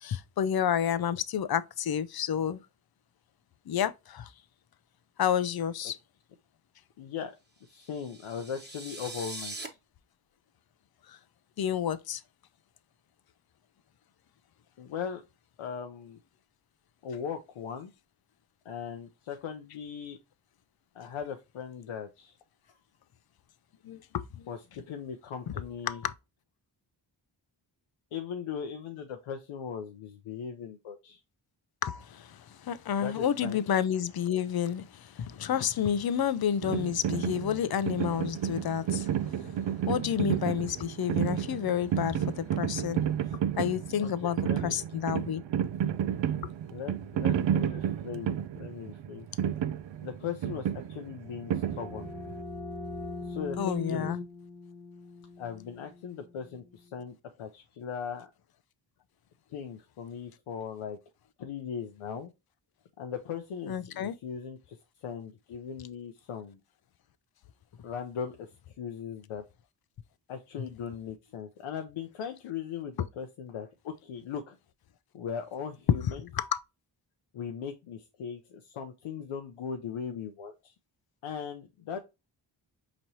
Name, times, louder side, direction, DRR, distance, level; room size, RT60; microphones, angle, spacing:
voice 1, 0.0-2.6 3.7-4.3 5.2-6.0 11.1-11.2 11.6-12.2 23.8-24.5 25.9-26.1 31.8-39.1 39.4-43.0 43.6-45.4 53.6-54.2 63.7-64.1 76.3-76.6, left 9 dB, 50° left, 0.5 m, -30 dB
voice 2, 7.0-7.3 7.7-9.8 14.8-15.2 15.6-16.2 17.0-17.9 18.6-20.2 20.9-22.4 24.5-26.0 28.1-31.2 33.0-33.6 44.0-44.8 46.7-49.3 50.0-52.1 53.3-54.1 55.4-58.3 59.5-61.0 61.4-62.3 63.0-66.6 67.8-69.4 70.3-74.6 75.1-76.2 77.3-80.7 81.2-82.0, left 7 dB, 85° left, 0.7 m, -39 dB
sound 1, 7.8-9.7, right 2 dB, 20° right, 1.2 m, -42 dB
sound 2, 36.6-52.4, right 9 dB, 65° right, 0.5 m, -31 dB
sound 3, 51.2-56.7, left 3 dB, 20° left, 1.4 m, -41 dB
5.1 x 3.0 x 2.7 m
cardioid pair, 55°, 49 cm